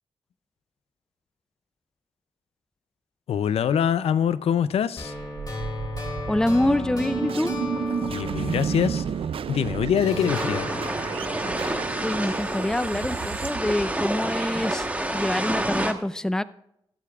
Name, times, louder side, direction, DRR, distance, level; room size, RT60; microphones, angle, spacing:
voice 1, 3.3-5.1 8.0-9.1 9.5-10.9, left 8 dB, 90° left, 15 dB, 0.4 m, -24 dB
sound 1, 5.0-9.5 10.0-13.0, left 2 dB, 40° left, 3.4 m, -35 dB
sound 2, 5.2-14.3, right 7 dB, 70° right, 0.4 m, -32 dB
voice 2, 6.3-7.5 12.0-14.9 15.1-16.4, left 1 dB, 5° left, 15 dB, 0.4 m, -25 dB
sound 3, 10.3-15.9, right 1 dB, 15° right, 1.1 m, -29 dB
20.5 x 8.3 x 2.4 m, 0.77 s
cardioid pair, 75°, 10 cm